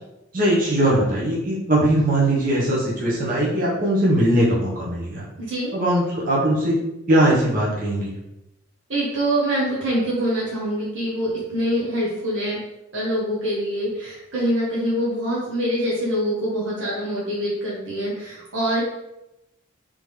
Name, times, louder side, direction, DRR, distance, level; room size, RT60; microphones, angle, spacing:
voice 1, 0.3-5.2 5.7-6.8 7.1-8.1, right 1 dB, 45° right, -6 dB, 1.1 m, -20 dB
voice 2, 5.4-5.7 8.9-12.6 12.9-18.8, equal, 65° right, -7 dB, 1.2 m, -24 dB
3.7 x 3.5 x 3.2 m, 0.91 s
head